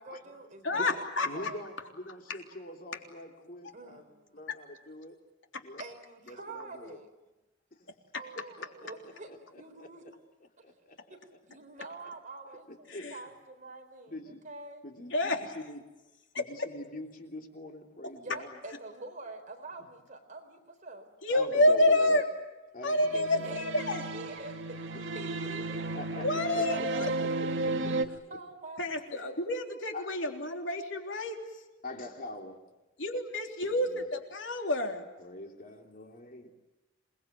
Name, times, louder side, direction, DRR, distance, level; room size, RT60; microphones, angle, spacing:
voice 1, 0.0-1.7 3.7-4.5 5.8-7.1 8.1-10.0 11.1-14.8 18.2-21.1 23.4-24.8 25.1-25.9 26.7-27.6 28.3-29.4, right 2 dB, 40° right, 4 dB, 4.2 m, -46 dB
voice 2, 0.6-1.5 2.3-2.4 5.5-5.6 12.9-13.2 15.1-15.5 16.3-16.4 21.2-22.2 22.8-24.1 26.1-27.1 28.8-31.4 33.0-35.1, left 1 dB, 70° left, 3 dB, 3.5 m, -29 dB
voice 3, 1.2-4.1 4.3-5.1 5.6-5.8 6.3-7.0 7.8-7.9 8.6-8.7 9.0-9.4 9.8-9.9 10.6-11.1 12.9-13.1 14.1-14.5 14.8-15.9 16.4-18.6 21.3-22.2 22.7-23.6 24.9-25.3 25.9-26.6 27.2-27.9 29.9-30.1 31.8-32.6 33.7-33.8 35.2-36.5, left 1 dB, 45° left, 3 dB, 3.2 m, -44 dB
sound 1, 22.9-28.0, right 2 dB, 75° right, 1.8 m, -34 dB
28.0 x 20.5 x 9.3 m, 1.1 s
head